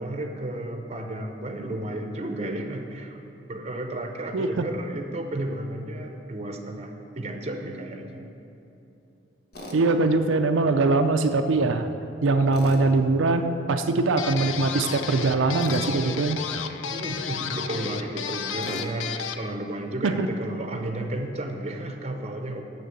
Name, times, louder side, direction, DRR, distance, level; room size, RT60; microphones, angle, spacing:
voice 1, 0.0-8.3 16.9-22.6, right 1 dB, 35° right, 4 dB, 0.7 m, -33 dB
voice 2, 4.3-4.7 9.7-11.9 12.2-16.4 20.0-20.3, right 3 dB, 90° right, 6 dB, 0.5 m, -22 dB
Tools, 9.5-9.8 12.5-12.9 15.6-15.9 18.6-18.9, left 1 dB, 50° left, 1.0 m, -38 dB
sound 1, 14.2-19.5, left 7 dB, 85° left, 0.5 m, -33 dB
6.7 x 6.6 x 7.6 m, 2.8 s
head